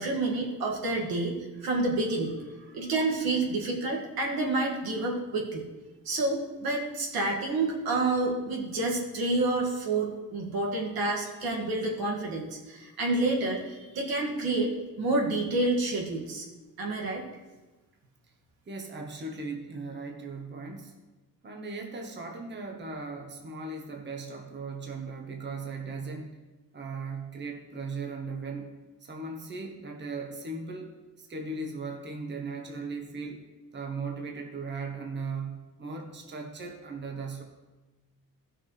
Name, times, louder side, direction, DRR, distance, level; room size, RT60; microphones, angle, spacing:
voice 1, 0.0-1.4 1.6-2.4 2.7-5.7 6.1-14.7 15.0-16.5 16.8-17.2, right 2 dB, 85° right, -2 dB, 2.2 m, -29 dB
voice 2, 2.6-2.9 18.7-20.9 21.4-26.3 26.7-28.7 29.0-30.9 31.2-37.4, right 4 dB, 30° right, 2 dB, 1.2 m, -38 dB
16.0 x 6.3 x 3.3 m, 1.2 s
cardioid pair, 115°, 35 cm